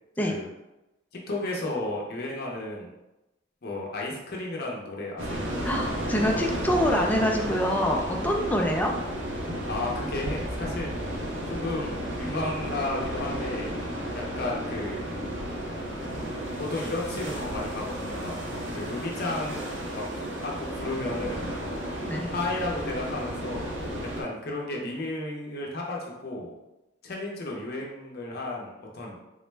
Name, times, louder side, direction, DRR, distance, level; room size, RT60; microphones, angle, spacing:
voice 1, 1.1-2.9 3.6-5.5 9.7-11.2 11.5-13.7 14.1-15.2 16.6-18.3 18.7-21.7 22.3-23.7 24.2-26.5 27.0-29.1, left 2 dB, 50° left, -2 dB, 0.6 m, -33 dB
sound 1, 5.2-24.2, equal, 70° right, 0.7 m, -33 dB
voice 2, 5.6-8.9 22.1-22.3, equal, 10° left, 1 dB, 0.3 m, -25 dB
3.7 x 2.1 x 3.2 m, 0.99 s
head